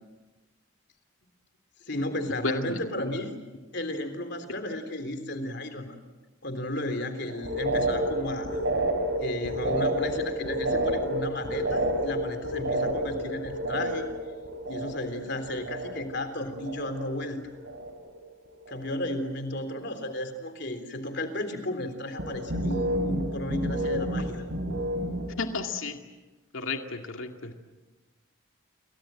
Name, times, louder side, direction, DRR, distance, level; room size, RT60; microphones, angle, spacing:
voice 1, 1.9-3.3 3.7-5.9 6.4-8.6 9.2-14.1 14.7-17.4 18.7-24.4, left 1 dB, 50° left, 8 dB, 3.6 m, -33 dB
voice 2, 2.4-3.1 25.4-26.0 26.5-27.5, left 3 dB, 70° left, 4 dB, 2.3 m, -32 dB
sound 1, 7.3-16.2 16.5-17.2 17.5-18.2 18.5-18.9 22.2-25.3, right 1 dB, 60° right, 5.1 m, -30 dB
29.0 x 24.0 x 7.7 m, 1.2 s
head